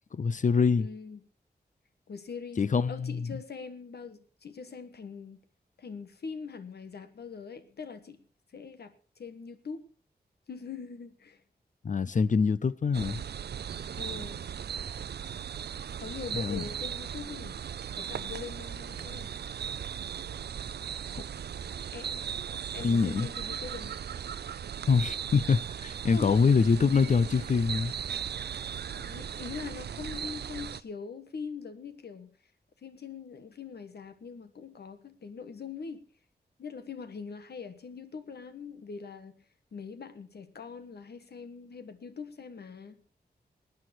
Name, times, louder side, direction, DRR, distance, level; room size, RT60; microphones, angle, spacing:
voice 1, 0.1-0.9 2.6-3.4 11.8-13.2 16.3-16.6 21.1-21.2 22.8-23.3 24.9-27.9, left 5 dB, 50° left, 0.6 m, -25 dB
voice 2, 0.8-1.2 2.1-5.4 5.8-8.2 8.5-9.8 10.5-11.4 13.9-14.4 16.0-17.6 17.9-19.3 21.9-22.3 22.7-24.0 26.1-26.4 28.9-32.3 32.8-36.0 36.6-39.4 39.7-43.0, left 5 dB, 75° left, 1.4 m, -42 dB
sound 1, 12.9-30.8, right 8 dB, 75° right, 0.5 m, -37 dB
18.5 x 9.5 x 4.4 m
wide cardioid pair, 145°, 17 cm